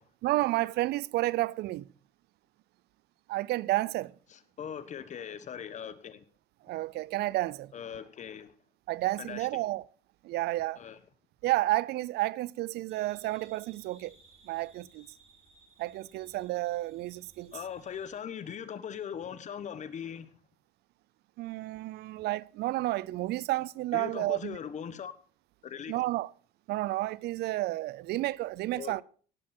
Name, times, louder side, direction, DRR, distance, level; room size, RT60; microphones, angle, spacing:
voice 1, 0.2-1.9 3.3-4.1 6.7-7.7 8.9-9.8 10.2-10.8 11.4-14.1 14.4-15.1 15.8-17.5 21.4-24.6 25.9-26.3 26.7-29.0, right 17 dB, 75° right, 0.4 m, -31 dB
voice 2, 4.3-6.2 7.7-8.5 9.2-9.6 10.8-11.0 17.5-20.4 23.9-25.1 25.6-25.9 28.7-29.0, left 8 dB, 45° left, 1.1 m, -40 dB
sound 1, 12.9-18.2, right 3 dB, 40° right, 6.7 m, -61 dB
17.5 x 7.4 x 4.3 m
cardioid pair, 110°, 17 cm